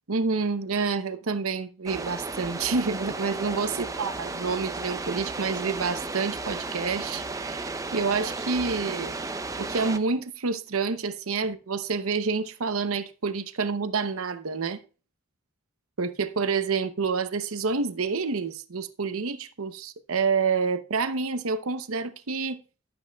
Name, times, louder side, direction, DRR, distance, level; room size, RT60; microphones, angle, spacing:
voice 1, 0.1-9.1 9.6-14.8 16.0-22.6, right 4 dB, 80° right, 0.8 m, -28 dB
sound 1, 1.9-10.0, right 3 dB, 15° right, 0.5 m, -34 dB
12.5 x 7.9 x 2.3 m
head